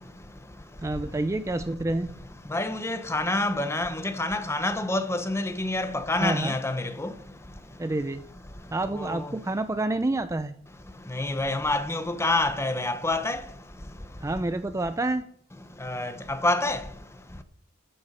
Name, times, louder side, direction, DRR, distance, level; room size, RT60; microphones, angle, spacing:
voice 1, 0.8-2.1 6.2-6.5 7.8-8.3 8.7-10.5 14.2-15.3, right 2 dB, 15° right, 0.4 m, -28 dB
voice 2, 2.5-7.1 9.0-9.3 11.1-13.4 15.8-16.8, left 2 dB, 15° left, 0.8 m, -27 dB
14.0 x 8.0 x 5.4 m
head